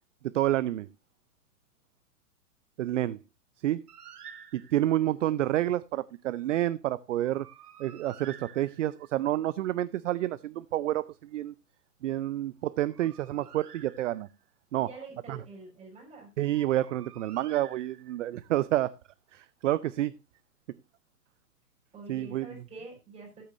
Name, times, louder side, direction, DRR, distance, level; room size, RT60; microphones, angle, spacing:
voice 1, 0.2-0.9 2.8-3.2 3.6-3.8 4.5-7.5 7.8-11.5 12.0-14.3 14.7-14.9 15.3-15.4 16.4-18.9 19.3-20.1 22.1-22.5, right 14 dB, 50° right, 0.6 m, -29 dB
Bird, 3.9-5.0 7.1-9.2 12.6-14.5 16.5-18.4, right 8 dB, 75° right, 1.5 m, -51 dB
voice 2, 14.8-16.3 21.9-23.4, right 3 dB, 15° right, 5.5 m, -46 dB
16.5 x 8.7 x 2.6 m
hypercardioid pair, 145°, 47 cm